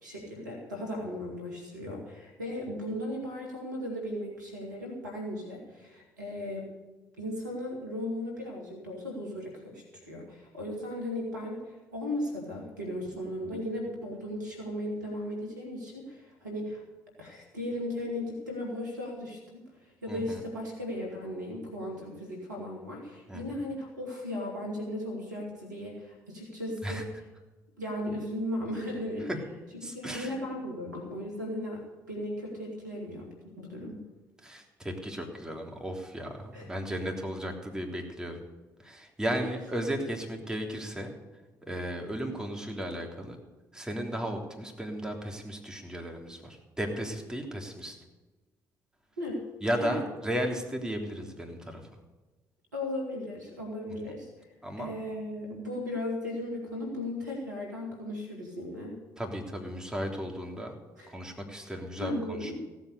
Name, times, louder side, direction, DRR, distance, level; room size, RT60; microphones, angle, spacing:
voice 1, 0.0-6.7 7.2-16.8 17.2-19.6 20.0-27.1 27.8-29.3 29.9-34.0 36.5-36.7 39.3-39.5 49.2-49.4 49.8-50.0 52.7-54.5 54.8-59.0 61.0-61.1 62.0-62.6, left 1 dB, 90° right, 1 dB, 2.9 m, -36 dB
voice 2, 20.1-20.4 23.3-23.4 26.8-27.0 29.3-29.4 29.8-30.4 34.4-38.4 38.8-41.1 41.7-43.4 43.7-47.9 49.6-51.8 54.6-55.0 59.2-60.7 61.1-62.6, equal, 5° right, 2 dB, 3.4 m, -35 dB
16.0 x 8.2 x 6.8 m, 1.2 s
hypercardioid pair, 50°, 9 cm